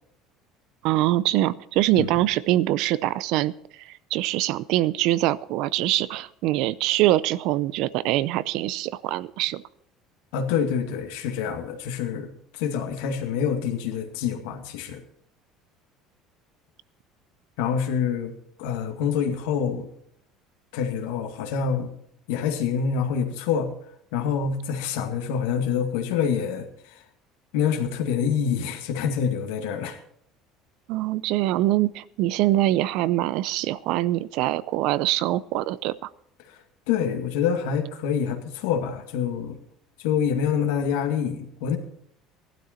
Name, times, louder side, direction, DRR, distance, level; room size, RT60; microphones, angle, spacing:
voice 1, 0.8-3.5 3.8-9.6 30.9-35.9, right 15 dB, 65° right, 19 dB, 0.5 m, -24 dB
voice 2, 10.3-15.0 17.6-18.3 18.6-19.9 20.7-21.9 22.3-23.7 24.1-26.7 27.5-30.0 36.5-36.6 36.9-39.6 40.0-41.8, left 7 dB, 90° left, 5 dB, 2.1 m, -26 dB
15.5 x 12.0 x 4.4 m, 0.69 s
cardioid pair, 145°, 0 cm